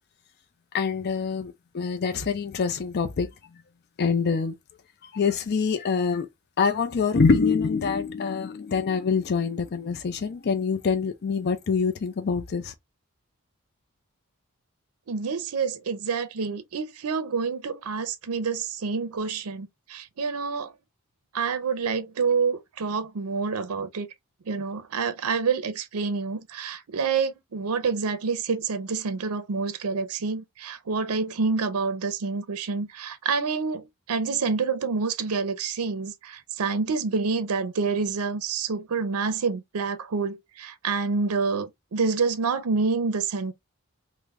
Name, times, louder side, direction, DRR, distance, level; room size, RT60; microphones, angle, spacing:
voice 1, 0.7-3.3 4.0-4.6 5.0-6.3 6.6-12.7, left 5 dB, 50° left, 0.4 m, -25 dB
voice 2, 15.1-20.7 21.3-24.1 24.5-43.5, right 5 dB, 80° right, 0.5 m, -27 dB
3.3 x 2.1 x 3.4 m
head